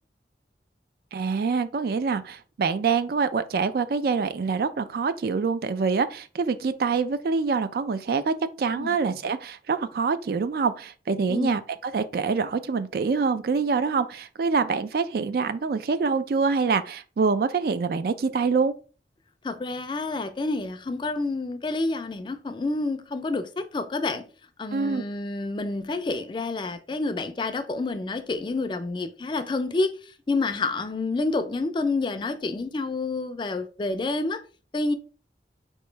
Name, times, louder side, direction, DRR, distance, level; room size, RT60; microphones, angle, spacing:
voice 1, 1.1-18.7 24.7-25.0, right 5 dB, 55° right, 0.3 m, -25 dB
voice 2, 19.4-24.2 24.6-34.4 34.7-34.9, left 3 dB, 25° left, 0.3 m, -28 dB
4.5 x 2.9 x 3.2 m
head